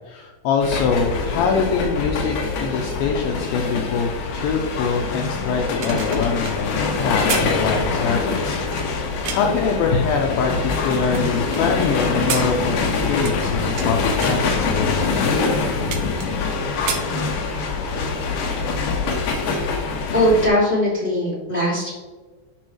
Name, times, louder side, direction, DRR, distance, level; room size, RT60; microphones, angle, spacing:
voice 1, 0.1-15.5, left 5 dB, 80° left, 1 dB, 2.2 m, -24 dB
sound 1, 0.6-20.5, left 4 dB, 65° left, 2.4 m, -24 dB
sound 2, 5.6-9.6 10.2-11.6 12.0-13.9 14.2-14.5 15.1-15.2 15.5-16.5 16.7-17.7 18.1-18.3, right 7 dB, 70° right, 2.7 m, -32 dB
voice 2, 20.1-21.9, equal, 15° left, -7 dB, 2.0 m, -19 dB
12.0 x 5.4 x 3.1 m, 1.4 s
omnidirectional pair, 5.0 m